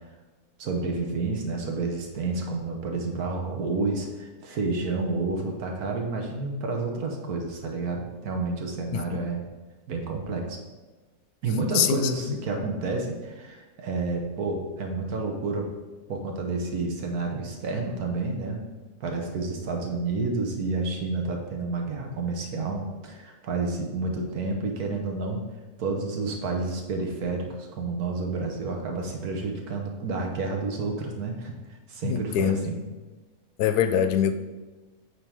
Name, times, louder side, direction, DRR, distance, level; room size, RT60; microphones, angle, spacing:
voice 1, 0.6-9.4 9.9-10.6 11.4-15.7 16.1-18.6 19.0-25.4 25.8-31.5 31.9-32.8, right 3 dB, 75° right, 2 dB, 1.5 m, -30 dB
voice 2, 32.0-32.6 33.6-34.3, left 9 dB, 85° left, 10 dB, 1.1 m, -23 dB
8.9 x 4.0 x 4.8 m, 1.2 s
omnidirectional pair, 1.6 m